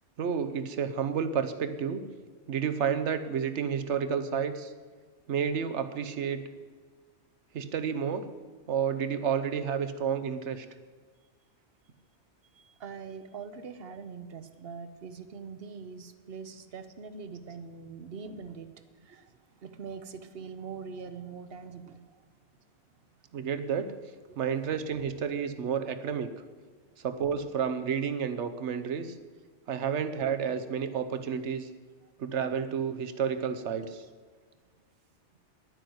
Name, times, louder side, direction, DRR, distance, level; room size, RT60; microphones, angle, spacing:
voice 1, 0.2-2.0 2.5-4.7 5.3-6.4 7.5-8.2 8.7-10.7 23.3-23.9 24.4-26.3 27.0-29.1 29.7-31.7 32.2-34.0, right 7 dB, 80° right, 10 dB, 1.2 m, -30 dB
voice 2, 12.5-22.3 22.9-23.0 23.3-23.5 24.3-24.4, right 5 dB, 60° right, 11 dB, 1.1 m, -43 dB
10.5 x 9.5 x 7.9 m, 1.5 s
omnidirectional pair, 1.2 m